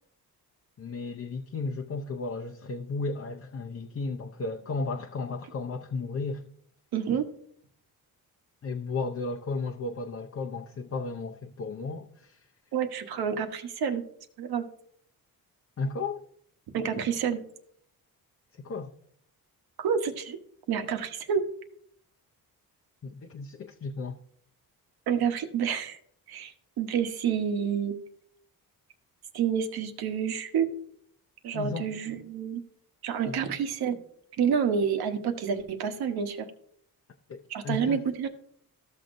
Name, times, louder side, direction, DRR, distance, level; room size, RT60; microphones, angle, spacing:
voice 1, 0.8-6.4 8.6-12.4 15.8-16.2 18.5-18.9 23.0-24.2 31.5-31.9 33.3-33.4 37.3-38.0, left 3 dB, 40° left, 0.6 m, -34 dB
voice 2, 6.9-7.3 12.7-14.0 14.4-14.6 16.7-17.4 19.8-20.4 20.7-21.4 25.1-26.0 26.3-27.9 29.3-30.7 31.4-32.6 33.0-34.0 34.4-36.5 37.5-38.3, right 7 dB, 90° right, 1.1 m, -28 dB
14.0 x 6.4 x 2.6 m
cardioid pair, 95°, 36 cm